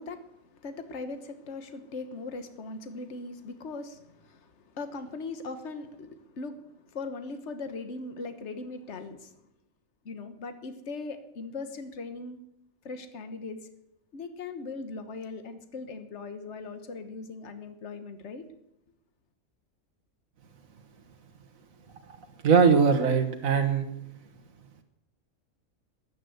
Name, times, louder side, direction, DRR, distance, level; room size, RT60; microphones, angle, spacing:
voice 1, 0.0-9.4 10.0-12.4 12.8-13.6 14.1-18.4, left 3 dB, 55° left, 9 dB, 1.6 m, -39 dB
voice 2, 22.4-23.9, right 5 dB, 80° right, 4 dB, 1.6 m, -21 dB
14.5 x 11.0 x 8.0 m, 0.81 s
omnidirectional pair, 1.4 m